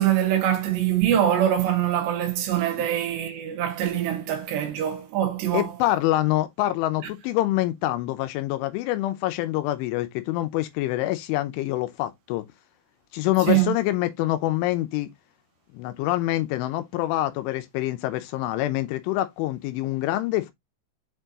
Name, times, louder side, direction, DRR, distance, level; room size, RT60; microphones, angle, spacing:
voice 1, 0.0-5.7 13.5-13.7, right 11 dB, 75° right, 3.2 m, -23 dB
voice 2, 5.5-12.4 13.1-15.1 15.7-20.5, left 16 dB, 90° left, 3.2 m, -26 dB
7.2 x 4.5 x 2.9 m
omnidirectional pair, 5.5 m